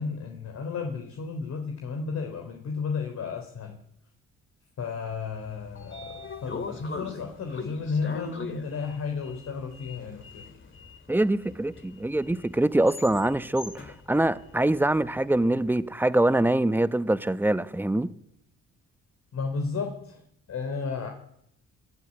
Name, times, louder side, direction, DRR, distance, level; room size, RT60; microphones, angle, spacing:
voice 1, 0.0-3.8 4.8-10.4 19.3-20.2 20.5-21.1, left 5 dB, 60° left, 3.5 m, -33 dB
Sliding door, 5.3-15.5, left 4 dB, 40° left, 2.8 m, -42 dB
voice 2, 11.1-18.1, right 1 dB, 5° right, 1.0 m, -24 dB
24.5 x 12.0 x 9.9 m
cardioid pair, 90°, 30 cm